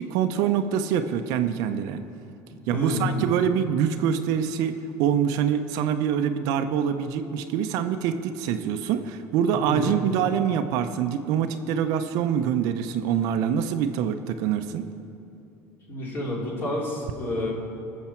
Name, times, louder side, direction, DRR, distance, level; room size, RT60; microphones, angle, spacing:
voice 1, 0.0-2.0 2.7-14.9, right 8 dB, 65° right, 8 dB, 0.6 m, -25 dB
voice 2, 2.7-3.1 9.5-10.0 15.9-17.5, left 1 dB, 35° left, -4 dB, 3.3 m, -29 dB
19.0 x 7.3 x 4.5 m, 2.8 s
cardioid pair, 135°, 7 cm